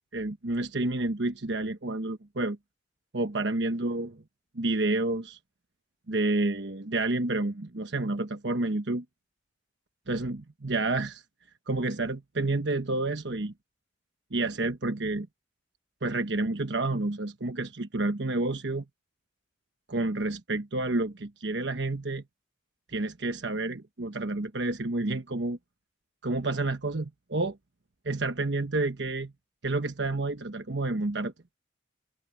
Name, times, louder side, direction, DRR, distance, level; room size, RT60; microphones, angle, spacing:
voice 1, 0.1-2.6 3.1-4.1 4.5-5.4 6.1-9.0 10.1-11.2 11.7-13.5 14.3-15.3 16.0-18.8 19.9-22.2 22.9-25.6 26.2-27.6 28.0-29.3 29.6-31.3, right 2 dB, 65° right, 1.2 m, -29 dB
head